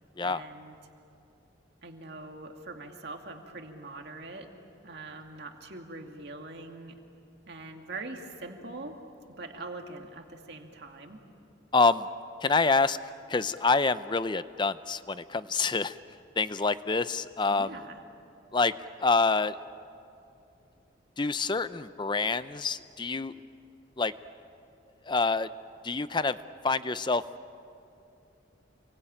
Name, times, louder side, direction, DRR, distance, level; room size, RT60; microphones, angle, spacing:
voice 1, 0.2-0.8 1.8-4.5 4.8-7.0 7.5-9.0 9.4-11.2 17.5-18.0, right 2 dB, 55° right, 3 dB, 2.4 m, -43 dB
voice 2, 11.7-12.1 12.4-13.0 13.3-16.0 16.4-17.7 18.5-18.7 19.0-19.6 21.2-23.4 24.0-24.1 25.1-25.5 25.8-26.4 26.6-27.2, left 4 dB, 25° left, 14 dB, 0.5 m, -26 dB
28.5 x 23.0 x 8.9 m, 2.7 s
head